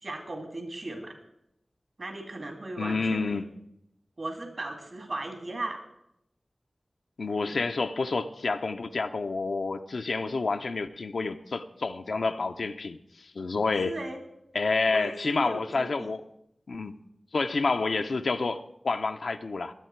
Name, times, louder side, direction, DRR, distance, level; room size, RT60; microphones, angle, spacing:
voice 1, 0.0-1.2 2.0-3.4 4.2-5.8 7.4-7.6 13.8-14.2 14.9-16.1, right 2 dB, 70° right, 2.5 m, -37 dB
voice 2, 2.8-3.4 7.2-14.0 14.5-16.2 16.7-17.0 17.3-19.7, left 3 dB, 90° left, 0.6 m, -29 dB
22.0 x 8.1 x 4.5 m
wide cardioid pair, 50°, 0 cm